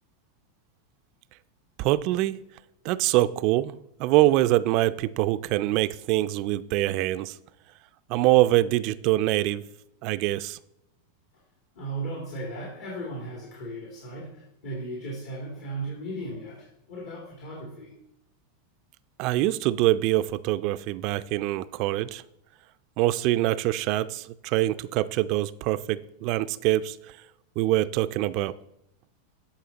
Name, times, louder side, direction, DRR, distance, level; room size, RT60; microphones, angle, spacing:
voice 1, 1.8-2.4 2.8-3.7 4.0-7.4 8.1-9.6 10.0-10.6 19.2-22.2 23.0-27.0 27.6-28.5, right 16 dB, 50° right, 0.3 m, -24 dB
voice 2, 11.7-17.9, right 2 dB, 70° left, 2.3 m, -36 dB
10.0 x 4.3 x 3.9 m
hypercardioid pair, 120°, 0 cm